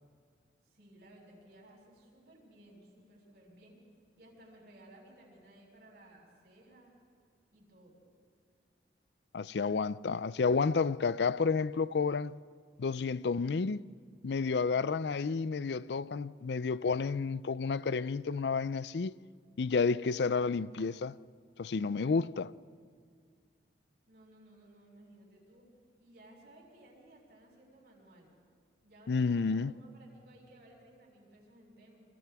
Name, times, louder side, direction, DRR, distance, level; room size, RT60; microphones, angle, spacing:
voice 1, 0.6-3.8 4.2-6.9 7.5-8.0 24.1-25.7 26.0-28.3 28.8-32.0, right 1 dB, 65° right, 6.9 m, -58 dB
voice 2, 9.3-12.4 12.8-13.8 14.2-19.1 19.6-21.2 21.6-22.5 29.1-29.7, left 4 dB, 65° left, 0.5 m, -30 dB
28.5 x 27.5 x 3.6 m
head